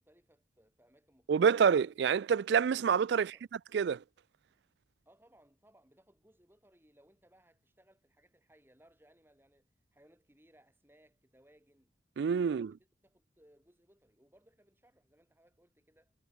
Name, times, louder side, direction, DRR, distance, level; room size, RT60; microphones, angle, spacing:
voice 1, 0.0-1.5 3.1-3.5 5.1-11.9 12.4-16.1, right 1 dB, 10° right, 5.5 m, -65 dB
voice 2, 1.3-3.3 3.7-4.0 12.2-12.7, right 6 dB, 55° right, 0.3 m, -27 dB
head